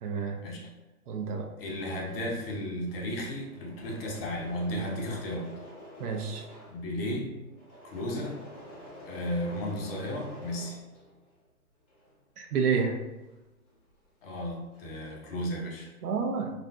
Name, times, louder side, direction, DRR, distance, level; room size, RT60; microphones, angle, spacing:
voice 1, 0.0-0.4 1.1-1.5 6.0-6.4 12.4-13.0 16.0-16.5, right 5 dB, 75° right, 3 dB, 0.7 m, -29 dB
voice 2, 1.6-5.5 6.7-7.4 7.8-8.4 9.0-10.8 14.2-15.9, equal, 40° left, -1 dB, 0.8 m, -34 dB
Engine / Mechanisms, 2.1-11.4 11.7-14.1 14.4-15.1, equal, 10° left, 0.9 m, -49 dB
4.1 x 2.7 x 2.2 m, 1.1 s
hypercardioid pair, 135°, 46 cm